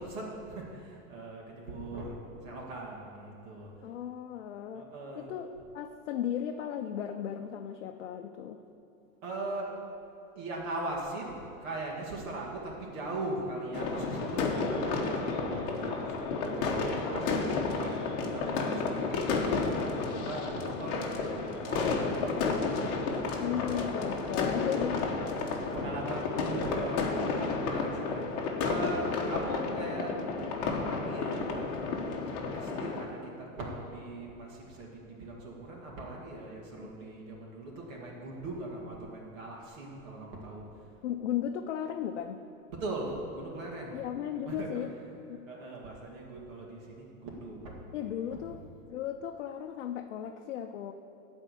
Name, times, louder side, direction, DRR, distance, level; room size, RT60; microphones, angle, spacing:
voice 1, 0.0-3.7 4.7-5.3 9.2-9.7 10.4-23.9 24.3-24.8 25.4-30.2 30.6-31.9 32.5-40.7 42.7-44.8 45.5-48.6, right 2 dB, 60° right, -3 dB, 2.4 m, -40 dB
voice 2, 3.8-4.9 5.1-8.6 17.6-17.9 23.4-25.1 36.8-36.9 41.0-42.4 43.9-44.9 45.3-45.4 47.9-48.6 48.9-50.9, left 9 dB, 55° left, 4 dB, 0.6 m, -35 dB
sound 1, 13.7-33.0, left 4 dB, 30° left, 1.1 m, -32 dB
13.0 x 4.4 x 8.2 m, 2.9 s
supercardioid pair, 170°, 44 cm